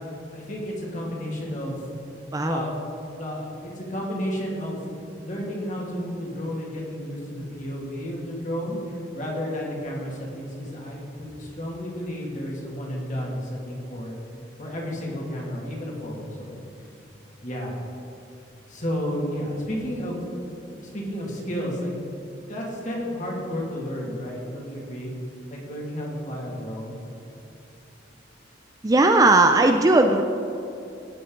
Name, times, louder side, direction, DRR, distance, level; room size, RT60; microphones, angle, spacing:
voice 1, 0.3-1.9 2.4-2.8 3.1-4.8 5.2-14.2 14.6-16.9 17.4-17.8 18.7-21.9 22.2-25.1 25.5-27.0, equal, 40° left, -3 dB, 2.3 m, -32 dB
voice 2, 2.3-2.6 28.8-30.2, right 2 dB, 20° right, 6 dB, 0.4 m, -17 dB
17.5 x 6.9 x 3.9 m, 2.8 s
head